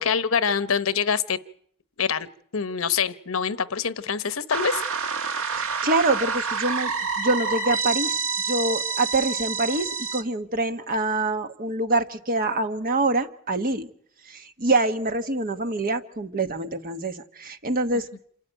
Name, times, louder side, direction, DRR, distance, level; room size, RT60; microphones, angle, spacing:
voice 1, 0.0-1.4 2.0-2.3 2.5-4.8, left 6 dB, 80° left, 13 dB, 0.9 m, -25 dB
sound 1, 4.5-10.2, right 5 dB, 85° right, 1.4 m, -28 dB
voice 2, 5.6-13.9 14.3-18.1, right 2 dB, 45° right, 8 dB, 1.2 m, -25 dB
27.5 x 13.0 x 9.1 m, 0.64 s
head